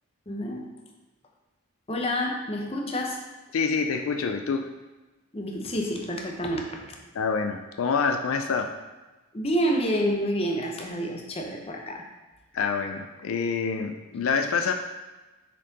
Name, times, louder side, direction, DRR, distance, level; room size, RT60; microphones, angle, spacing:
voice 1, 0.3-0.7 1.9-3.2 5.3-6.8 9.3-12.0, equal, 25° left, 1 dB, 0.7 m, -28 dB
voice 2, 3.5-4.7 7.1-8.7 12.5-14.7, left 5 dB, 70° left, 5 dB, 0.4 m, -26 dB
6.3 x 4.4 x 4.0 m, 1.2 s
head